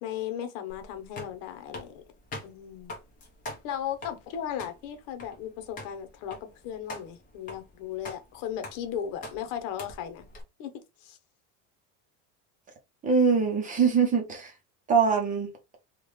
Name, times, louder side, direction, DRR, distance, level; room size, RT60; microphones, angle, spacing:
voice 1, 0.0-2.0 2.4-3.0 3.6-10.2 10.6-10.7 11.0-11.2, left 9 dB, 65° left, 1.0 m, -36 dB
sound 1, 0.7-10.4, left 2 dB, 20° left, 1.0 m, -45 dB
voice 2, 13.0-14.5 14.9-15.5, right 5 dB, 20° right, 0.8 m, -23 dB
3.7 x 2.4 x 3.1 m
cardioid pair, 170°, 37 cm